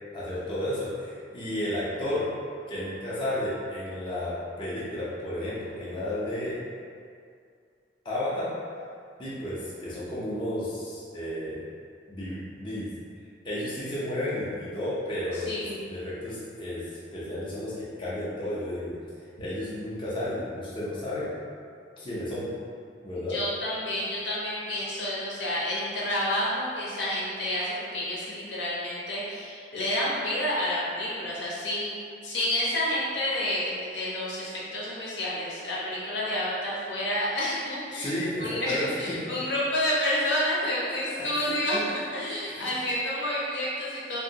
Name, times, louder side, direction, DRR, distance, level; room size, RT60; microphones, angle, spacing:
voice 1, 0.1-2.3 2.7-6.6 8.0-8.5 9.2-11.6 12.1-12.9 13.4-18.9 19.4-21.3 22.0-22.5 23.0-23.4 37.9-39.2 41.1-41.5 42.4-42.7, left 1 dB, 30° left, -9 dB, 0.5 m, -32 dB
voice 2, 15.3-15.8 23.3-32.0 32.2-44.2, left 1 dB, 75° left, -7 dB, 0.8 m, -29 dB
2.8 x 2.6 x 2.7 m, 2.3 s
head